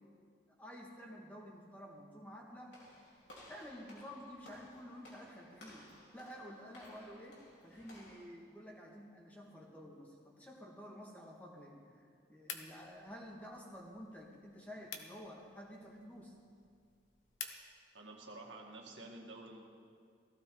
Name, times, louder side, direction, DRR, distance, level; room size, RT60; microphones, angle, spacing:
voice 1, 0.6-2.8 3.5-16.3, equal, 10° left, -3 dB, 1.9 m, -51 dB
Walk footsteps / Slam, 2.7-8.3, left 1 dB, 70° left, 4.0 m, -58 dB
sound 1, 12.4-17.7, left 6 dB, 90° left, 1.2 m, -51 dB
voice 2, 17.9-19.6, right 2 dB, 85° right, 0 dB, 2.1 m, -50 dB
18.0 x 16.0 x 3.9 m, 2.2 s
head